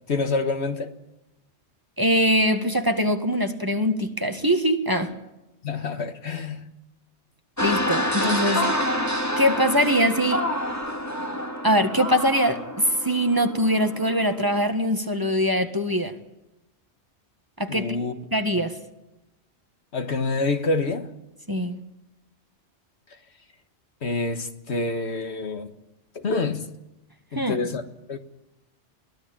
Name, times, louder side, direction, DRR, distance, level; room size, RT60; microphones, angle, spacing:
voice 1, 0.1-0.9 5.6-6.7 17.7-18.1 19.9-21.1 24.0-25.7 26.2-26.7 27.3-27.8 28.1-28.2, left 3 dB, 70° left, 1.8 m, -27 dB
voice 2, 2.0-5.1 7.6-8.6 9.4-10.4 11.6-16.1 17.6-18.0 18.3-18.7 21.5-21.8 27.3-27.7, equal, 20° right, 1.7 m, -22 dB
sound 1, 7.6-14.6, equal, 15° left, 2.3 m, -28 dB
23.0 x 15.5 x 8.7 m
omnidirectional pair, 1.2 m